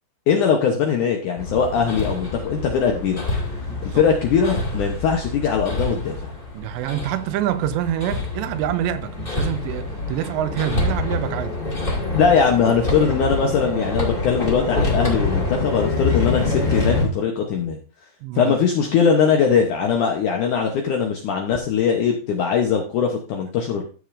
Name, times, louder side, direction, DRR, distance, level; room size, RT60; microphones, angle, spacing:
voice 1, 0.3-3.2 3.8-6.3 12.1-17.8 18.4-23.8, left 6 dB, 85° left, 1.7 m, -20 dB
Hammer, 1.4-17.0, left 3 dB, 60° left, 0.5 m, -26 dB
voice 2, 3.7-4.1 6.5-11.6 18.2-18.6, right 12 dB, 85° right, 2.9 m, -26 dB
14.0 x 6.5 x 2.6 m
omnidirectional pair, 5.0 m